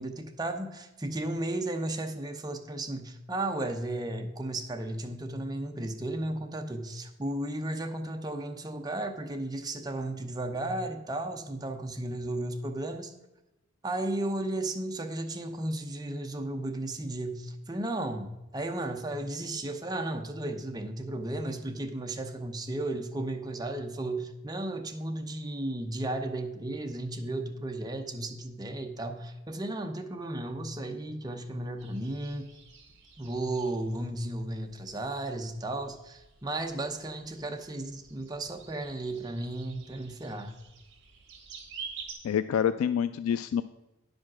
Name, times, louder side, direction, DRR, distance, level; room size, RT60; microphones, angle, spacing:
voice 1, 0.0-13.1 13.8-32.5 33.2-40.5, right 1 dB, 20° right, 4 dB, 0.7 m, -34 dB
sound 1, 31.8-42.1, right 6 dB, 55° right, 1.8 m, -49 dB
voice 2, 42.2-43.6, left 8 dB, 90° left, 13 dB, 0.3 m, -27 dB
9.9 x 5.1 x 6.0 m, 0.98 s
head